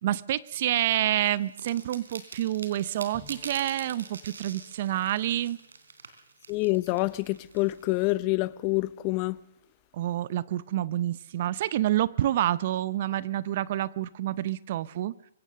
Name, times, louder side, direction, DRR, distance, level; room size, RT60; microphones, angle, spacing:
voice 1, 0.0-5.6 9.9-15.1, right 13 dB, 50° right, 0.7 m, -28 dB
sound 1, 1.3-8.1, right 4 dB, 85° right, 3.5 m, -45 dB
Bowed string instrument, 3.1-6.9, left 2 dB, 5° left, 3.5 m, -57 dB
voice 2, 6.5-9.4, left 21 dB, 35° left, 0.7 m, -27 dB
24.0 x 17.0 x 6.7 m
hypercardioid pair, 140°, 0 cm